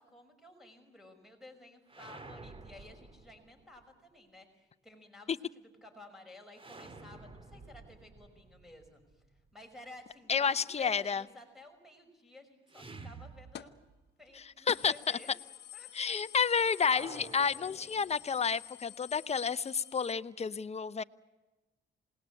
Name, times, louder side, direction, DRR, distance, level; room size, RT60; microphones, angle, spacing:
voice 1, 0.0-5.3 5.8-9.0 9.5-13.7 14.2-15.3 15.7-16.3, left 2 dB, ahead, 5 dB, 5.6 m, -53 dB
sound 1, 1.9-3.9 6.5-9.5 12.7-14.1 14.4-14.5 16.7-18.5, right 3 dB, 25° right, 2.1 m, -51 dB
voice 2, 10.3-11.2 14.7-15.2 15.9-21.0, left 6 dB, 30° left, 14 dB, 0.8 m, -30 dB
sound 2, 13.5-13.8 14.2-14.3 14.7-20.1, left 11 dB, 60° left, 1.1 m, -50 dB
27.5 x 19.5 x 8.4 m, 1.1 s
cardioid pair, 90°, 20 cm